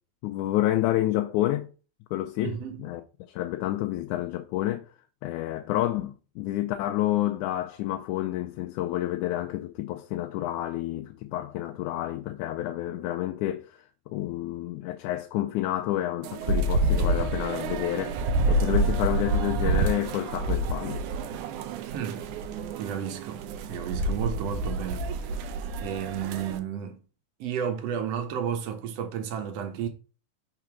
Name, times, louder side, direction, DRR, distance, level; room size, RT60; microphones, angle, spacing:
voice 1, 0.2-1.7 2.1-3.0 3.3-4.9 5.2-21.2, left 14 dB, 85° left, 2.0 m, -29 dB
voice 2, 2.4-2.9 21.8-22.3 22.8-25.5 25.8-27.0 27.4-29.9, right 8 dB, 65° right, 2.1 m, -33 dB
sound 1, 16.2-26.6, right 2 dB, 85° right, 2.2 m, -28 dB
5.9 x 3.9 x 6.1 m
omnidirectional pair, 3.5 m